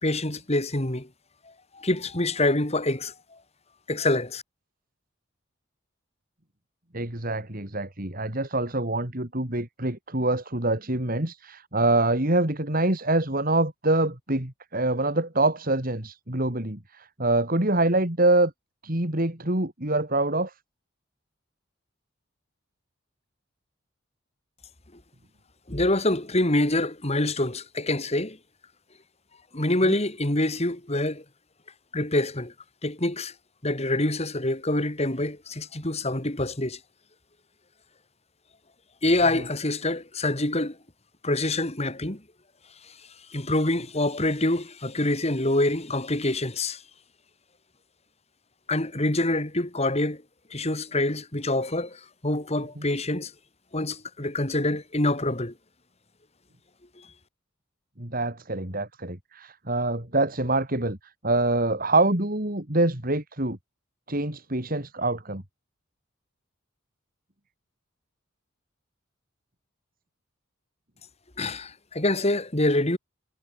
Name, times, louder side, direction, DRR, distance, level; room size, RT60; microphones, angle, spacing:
voice 1, 0.0-1.1 1.7-3.1 3.9-4.4 25.7-28.4 29.5-31.2 31.9-32.5 32.8-33.3 33.6-36.8 39.0-40.8 41.2-42.2 43.3-46.8 48.7-50.2 50.5-53.3 53.7-55.5 71.4-73.0, left 1 dB, 30° left, 3.0 m, -26 dB
voice 2, 6.9-18.5 18.8-20.5 29.8-30.0 39.3-39.4 52.8-52.9 58.0-61.0 61.2-63.6 64.1-65.4, right 2 dB, 45° right, 3.4 m, -25 dB
head